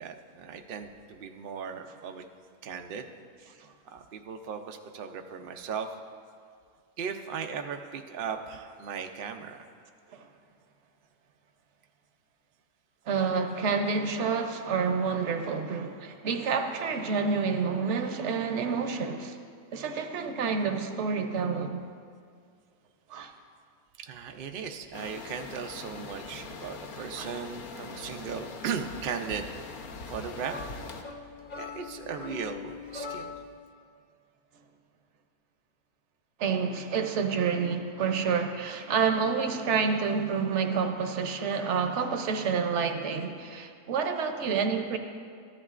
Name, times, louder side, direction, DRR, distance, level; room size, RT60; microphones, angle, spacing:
voice 1, 0.0-2.2 2.6-3.1 3.8-6.0 7.0-9.6 24.0-29.5 30.1-30.6 31.6-33.3, right 6 dB, 90° right, 5 dB, 0.4 m, -37 dB
voice 2, 13.1-19.4 19.7-21.8 23.1-23.3 27.2-27.3 36.4-45.0, right 5 dB, 60° right, 6 dB, 0.8 m, -28 dB
sound 1, 24.9-31.0, left 4 dB, 70° left, 1.2 m, -42 dB
sound 2, 30.5-33.6, left 5 dB, 50° left, 0.5 m, -41 dB
14.0 x 11.0 x 2.4 m, 2.2 s
omnidirectional pair, 1.6 m